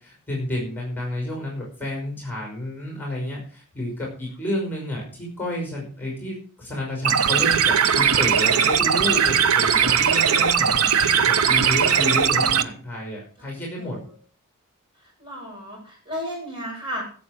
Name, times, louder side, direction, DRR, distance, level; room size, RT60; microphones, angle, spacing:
voice 1, 0.0-10.8 11.3-14.0, left 1 dB, 10° left, -1 dB, 5.8 m, -30 dB
sound 1, 7.0-12.6, right 7 dB, 70° right, 0.9 m, -19 dB
voice 2, 12.0-12.7 13.8-13.9 15.2-17.0, equal, 20° right, -1 dB, 7.5 m, -33 dB
17.0 x 8.0 x 5.0 m, 0.41 s
head